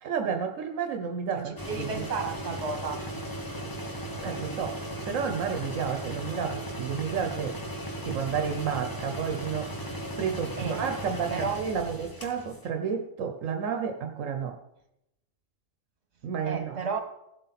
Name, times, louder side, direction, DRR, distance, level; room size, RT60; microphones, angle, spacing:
voice 1, 0.0-2.1 4.2-4.8 5.1-7.6 8.0-14.6 16.2-16.8, right 7 dB, 85° right, 5 dB, 1.2 m, -31 dB
voice 2, 1.3-3.0 10.6-10.9 11.3-11.6 16.4-17.0, right 5 dB, 60° right, 5 dB, 1.7 m, -32 dB
sound 1, 1.6-12.7, right 1 dB, 15° left, 1.3 m, -37 dB
16.5 x 7.9 x 4.2 m, 0.86 s
omnidirectional pair, 1.3 m